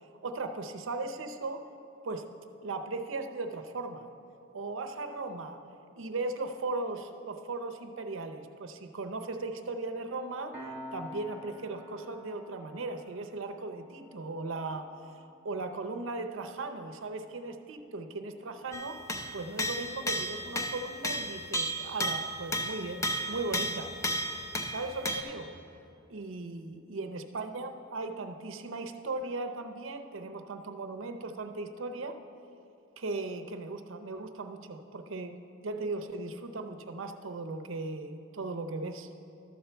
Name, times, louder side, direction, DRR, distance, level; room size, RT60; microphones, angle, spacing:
voice 1, 0.2-1.7 2.0-2.3 2.6-4.1 4.5-5.6 6.0-10.6 10.9-15.0 15.4-19.0 19.3-23.9 24.7-25.6 26.1-32.2 33.0-39.1, right 3 dB, 75° right, 7 dB, 0.6 m, -37 dB
Piano, 10.5-21.6, left 1 dB, 10° right, 1.2 m, -52 dB
sound 1, 18.7-25.2, equal, 15° left, 0.6 m, -33 dB
12.5 x 4.4 x 6.9 m, 2.9 s
head